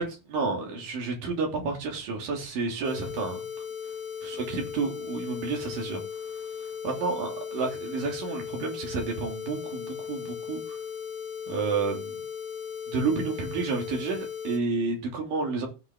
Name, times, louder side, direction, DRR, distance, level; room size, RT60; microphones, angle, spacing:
voice 1, 0.0-3.5 4.2-6.0 6.6-10.8 11.5-12.2 12.9-15.7, right 4 dB, 75° right, 4.6 m, -30 dB
sound 1, 2.8-14.6, left 7 dB, 65° left, 1.4 m, -37 dB
16.0 x 5.9 x 3.8 m
omnidirectional pair, 3.9 m